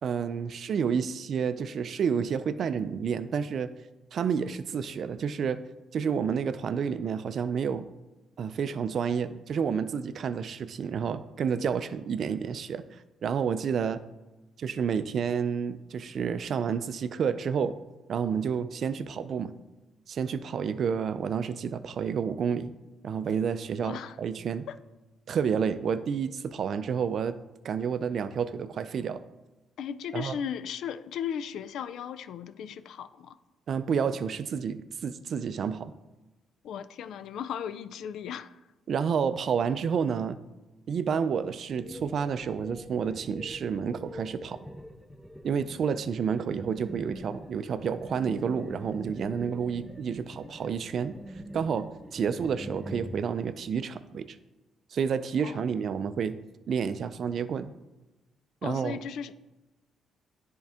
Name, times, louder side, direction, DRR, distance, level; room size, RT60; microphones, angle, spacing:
voice 1, 0.0-3.7 4.1-5.6 5.9-7.9 8.4-12.8 13.2-14.0 14.6-17.8 18.1-19.5 20.1-22.7 23.0-24.7 25.3-27.4 27.6-29.2 30.1-30.4 33.7-35.9 38.9-40.4 40.9-44.6 45.4-51.2 51.5-54.3 54.9-56.4 56.7-57.7 58.6-59.0, right 7 dB, 60° right, 13 dB, 0.4 m, -30 dB
voice 2, 23.8-24.2 24.7-24.8 29.8-33.4 36.6-38.6 55.4-55.6 58.6-59.3, left 8 dB, 75° left, 13 dB, 0.3 m, -36 dB
sound 1, 41.8-53.2, equal, 5° left, 0.6 m, -44 dB
10.5 x 3.8 x 3.4 m, 1.1 s
cardioid pair, 90°, 0 cm